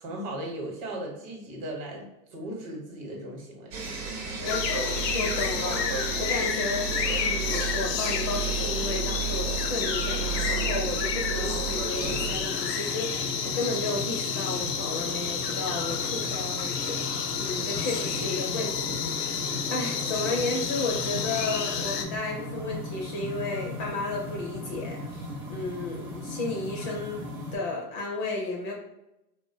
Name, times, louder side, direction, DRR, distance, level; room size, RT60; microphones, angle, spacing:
voice 1, 0.0-3.8, right 1 dB, 50° right, 0 dB, 0.9 m, -37 dB
sound 1, 3.7-12.4, right 6 dB, 75° right, 0.9 m, -32 dB
sound 2, 4.4-22.0, left 7 dB, 90° left, 0.5 m, -30 dB
voice 2, 4.4-6.9 7.2-27.2 27.5-28.7, left 3 dB, 35° left, -1 dB, 0.5 m, -33 dB
sound 3, 12.0-27.6, left 1 dB, 25° right, 0.6 m, -38 dB
2.5 x 2.1 x 2.5 m, 0.87 s
hypercardioid pair, 120°, 48 cm